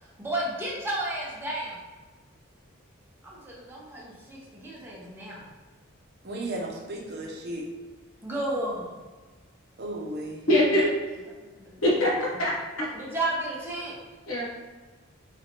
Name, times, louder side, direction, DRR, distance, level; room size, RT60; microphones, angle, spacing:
voice 1, 0.0-1.8 3.2-5.5 8.2-9.0 11.4-11.8 12.9-14.0, right 1 dB, 10° right, -5 dB, 0.8 m, -33 dB
voice 2, 6.2-7.7 9.8-10.4, right 1 dB, 50° right, 0 dB, 0.7 m, -34 dB
voice 3, 10.5-10.9 11.8-12.9 14.3-14.4, left 1 dB, 80° left, -5 dB, 1.0 m, -23 dB
4.0 x 3.1 x 2.9 m, 1.3 s
head